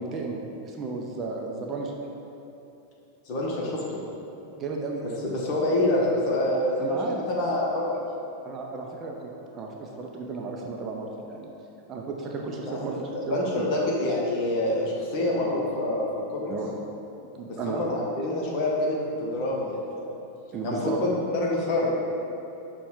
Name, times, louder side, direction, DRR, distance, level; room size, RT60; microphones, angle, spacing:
voice 1, 0.0-1.9 4.5-5.4 6.8-7.3 8.4-11.5 11.9-13.9 16.5-16.8 17.3-17.9 20.5-21.0, right 3 dB, 30° right, 0 dB, 0.4 m, -34 dB
voice 2, 3.3-4.0 5.2-7.0 7.3-8.0 12.6-16.5 17.5-20.1 20.6-21.9, left 1 dB, 45° left, -3 dB, 0.8 m, -27 dB
5.7 x 2.2 x 3.7 m, 2.9 s
figure-of-eight pair, 90°, 0 cm